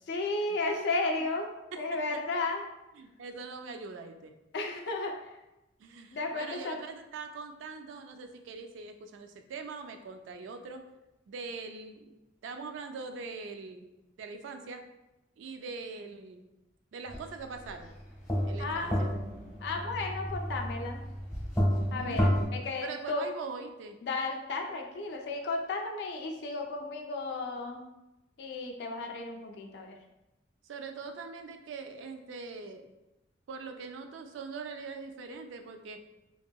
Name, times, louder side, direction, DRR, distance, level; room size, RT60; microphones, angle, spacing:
voice 1, 0.1-1.5 1.8-2.6 4.5-5.3 6.1-6.8 18.6-18.9 19.6-21.0 21.9-23.2 24.0-27.8 28.4-30.0, left 3 dB, 60° left, 2 dB, 0.3 m, -33 dB
voice 2, 3.0-4.4 5.8-10.9 11.3-13.9 14.2-14.9 15.4-16.4 16.9-17.9 18.4-19.2 21.9-22.4 22.8-24.0 30.6-32.9 33.5-36.1, right 4 dB, 85° right, 6 dB, 0.3 m, -42 dB
sound 1, 17.1-17.3 17.6-22.5, equal, 15° left, 0.7 m, -31 dB
2.8 x 2.6 x 2.2 m, 0.97 s
head